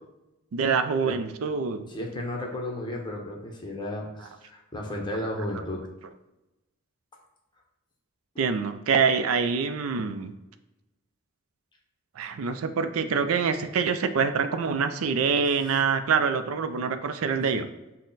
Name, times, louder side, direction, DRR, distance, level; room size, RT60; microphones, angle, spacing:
voice 1, 0.5-1.9 5.6-5.7 8.4-10.3 12.2-17.7, right 5 dB, 80° right, 9 dB, 0.4 m, -25 dB
voice 2, 1.9-5.8 8.3-8.4, left 1 dB, 20° left, 0 dB, 0.8 m, -33 dB
6.2 x 2.1 x 3.9 m, 0.99 s
head